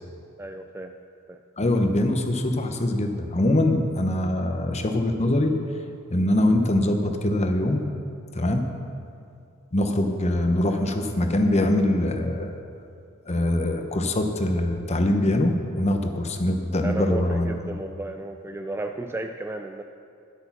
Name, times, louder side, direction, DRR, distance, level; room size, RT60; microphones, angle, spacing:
voice 1, 0.4-0.9 1.3-1.4 16.8-19.8, right 2 dB, 10° right, 5 dB, 0.3 m, -33 dB
voice 2, 1.6-5.5 6.1-7.9 8.3-8.7 9.7-12.5 13.3-17.5, left 1 dB, 30° left, 5 dB, 0.9 m, -23 dB
11.5 x 8.3 x 6.0 m, 2.5 s
head